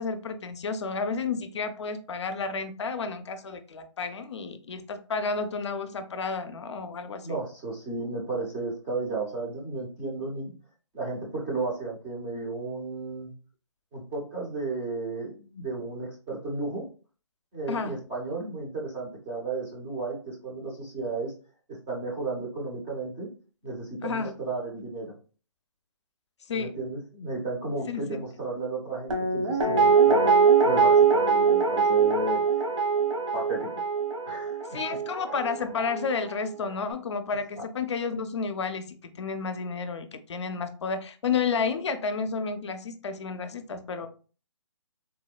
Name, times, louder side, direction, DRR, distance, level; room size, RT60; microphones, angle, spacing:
voice 1, 0.0-7.4 17.7-18.0 24.0-24.3 26.5-26.8 27.9-28.2 34.7-44.1, left 5 dB, 60° left, 0.4 m, -31 dB
voice 2, 7.2-10.5 10.9-13.3 13.9-16.8 17.5-21.3 21.7-23.3 23.6-25.1 26.5-30.3 30.6-32.4 33.3-33.7 34.2-34.5 37.6-37.7, right 3 dB, 10° right, 0.4 m, -33 dB
Guitar, 29.1-36.1 36.4-36.5, right 5 dB, 75° right, 0.9 m, -22 dB
3.6 x 2.1 x 2.3 m
hypercardioid pair, 155°, 16 cm